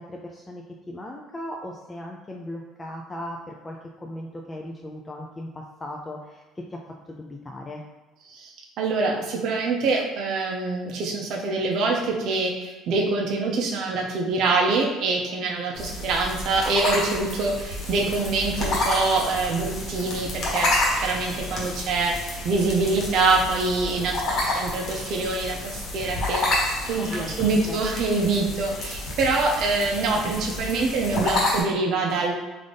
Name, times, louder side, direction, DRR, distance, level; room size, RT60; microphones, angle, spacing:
voice 1, 0.0-6.8 7.1-7.8 27.0-27.8, left 1 dB, 15° left, 0 dB, 0.4 m, -37 dB
voice 2, 8.8-32.3, right 3 dB, 60° right, 0 dB, 0.6 m, -25 dB
sound 1, 15.8-31.6, left 2 dB, 55° left, 1.1 m, -29 dB
3.8 x 2.5 x 3.3 m, 1.2 s
cardioid pair, 120°, 0 cm